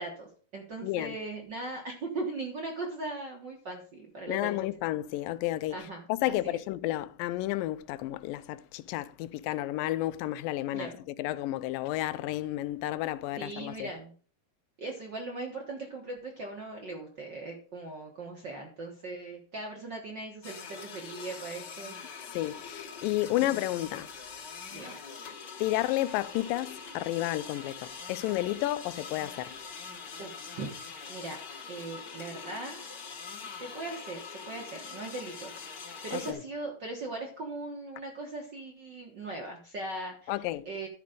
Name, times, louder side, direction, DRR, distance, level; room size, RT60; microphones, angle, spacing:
voice 1, 0.0-4.5 5.7-6.6 10.7-10.9 13.4-14.1 14.8-22.0 23.3-23.4 24.7-25.0 30.2-30.7 31.1-31.4 31.7-32.8 33.6-35.8 36.0-40.9, right 2 dB, 50° right, 1.3 m, -39 dB
voice 2, 0.8-1.1 4.3-10.9 11.2-13.9 22.3-24.1 25.6-29.6 36.1-36.4 40.3-40.7, left 15 dB, 90° left, 2.3 m, -31 dB
sound 1, 20.4-36.3, left 5 dB, 45° left, 1.6 m, -44 dB
12.5 x 5.0 x 5.0 m
omnidirectional pair, 3.9 m